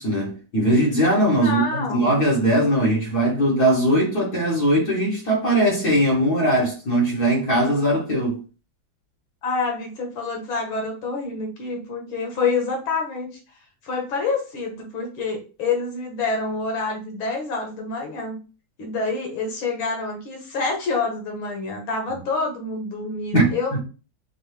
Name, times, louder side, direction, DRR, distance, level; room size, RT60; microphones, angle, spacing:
voice 1, 0.0-8.4 23.3-23.8, right 1 dB, 55° left, 2.0 m, -20 dB
voice 2, 1.4-2.1 9.4-13.4 13.8-18.4 18.8-23.8, left 4 dB, 90° left, 2.1 m, -27 dB
5.3 x 2.3 x 3.3 m
omnidirectional pair, 2.1 m